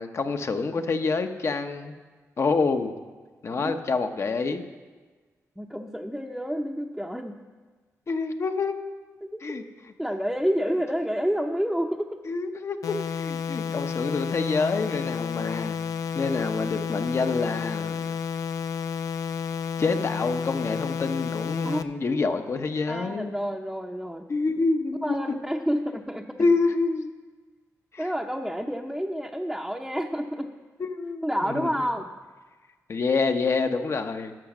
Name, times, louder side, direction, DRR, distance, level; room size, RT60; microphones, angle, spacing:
voice 1, 0.0-1.9 2.4-2.9 3.4-4.6 8.1-8.8 9.4-9.6 12.3-15.8 16.1-18.2 19.8-23.3 24.3-25.2 26.4-27.1 27.9-28.1 30.8-31.7 32.9-34.4, left 4 dB, 50° left, 7 dB, 0.9 m, -27 dB
voice 2, 5.6-7.4 9.2-9.6 10.0-12.1 21.6-21.8 22.9-24.3 25.0-26.5 28.0-30.5 31.2-32.1, equal, ahead, 0 dB, 0.7 m, -29 dB
sound 1, 12.8-21.8, left 7 dB, 80° left, 0.4 m, -31 dB
12.5 x 6.5 x 6.0 m, 1.4 s
cardioid pair, 75°, 6 cm